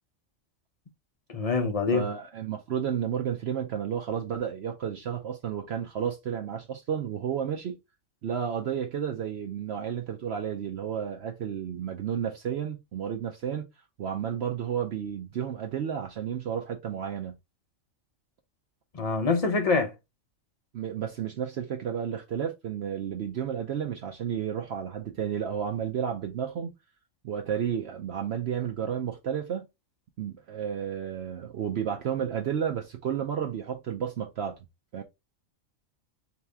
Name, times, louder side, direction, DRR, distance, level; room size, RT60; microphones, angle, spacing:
voice 1, 1.3-2.0 18.9-19.9, left 4 dB, 45° left, 0.5 m, -25 dB
voice 2, 1.9-7.8 8.2-13.7 14.0-17.4 20.7-26.7 27.2-29.7 30.2-34.6 34.9-35.0, right 8 dB, 60° right, 0.7 m, -32 dB
4.0 x 3.0 x 3.4 m
omnidirectional pair, 1.4 m